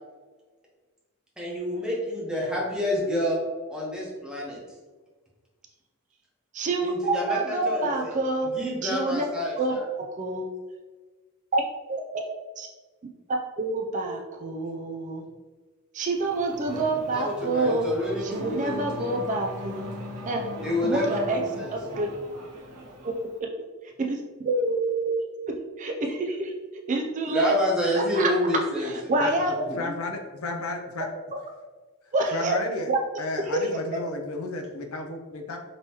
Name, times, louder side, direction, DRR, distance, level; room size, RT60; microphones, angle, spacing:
voice 1, 1.4-3.4 3.7-4.6 6.8-8.2 8.4-9.9 17.1-19.1 20.6-22.0 27.3-29.1 29.7-29.8, left 1 dB, 5° right, -4 dB, 1.0 m, -28 dB
voice 2, 6.5-8.5 8.8-9.3 9.6-10.5 11.5-11.6 11.9-12.2 12.6-12.7 13.6-15.2 15.9-17.9 18.2-19.9 20.3-20.5 20.8-22.1 23.0-23.1 23.4-23.5 24.0-25.2 25.5-26.5 26.9-27.5 28.0-28.3 28.8-29.9 32.1-32.6 33.7-34.0, right 2 dB, 35° right, 2 dB, 0.4 m, -27 dB
Race car auto racing / Accelerating revving vroom, 16.1-23.4, equal, 85° right, 0.9 m, -39 dB
voice 3, 29.8-31.1 32.3-32.9 33.2-35.6, left 2 dB, 65° left, 3 dB, 0.5 m, -32 dB
5.3 x 3.0 x 2.9 m, 1.3 s
head